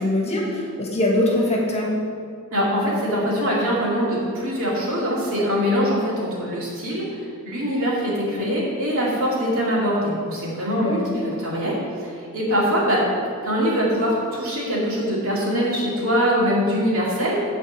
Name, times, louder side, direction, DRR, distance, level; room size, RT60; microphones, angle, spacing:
voice 1, 0.0-1.9 10.8-11.0, left 1 dB, 30° left, -2 dB, 1.6 m, -22 dB
voice 2, 2.5-13.0 13.4-17.5, equal, 65° right, -5 dB, 2.5 m, -23 dB
9.7 x 4.2 x 7.3 m, 2.2 s
head